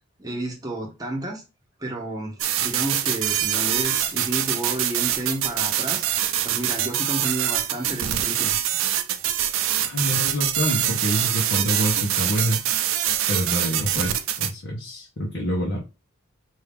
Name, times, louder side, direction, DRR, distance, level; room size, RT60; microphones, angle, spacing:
voice 1, 0.2-1.4 1.8-6.0 6.4-8.8, right 1 dB, 20° right, 0.8 m, -31 dB
sound 1, 2.4-14.5, right 11 dB, 75° right, 0.6 m, -24 dB
voice 2, 9.8-12.6 13.3-15.8, equal, 65° left, 1.0 m, -26 dB
4.6 x 2.7 x 3.5 m
head